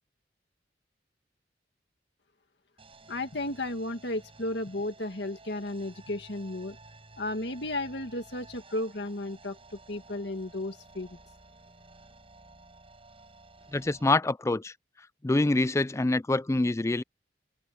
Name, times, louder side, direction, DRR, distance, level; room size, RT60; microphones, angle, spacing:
sound 1, 2.8-14.1, right 3 dB, 30° right, 7.9 m, -54 dB
voice 1, 3.1-6.8 7.2-11.2, left 1 dB, 70° left, 2.0 m, -34 dB
voice 2, 13.7-14.7 15.2-17.0, left 2 dB, 15° left, 0.4 m, -25 dB
head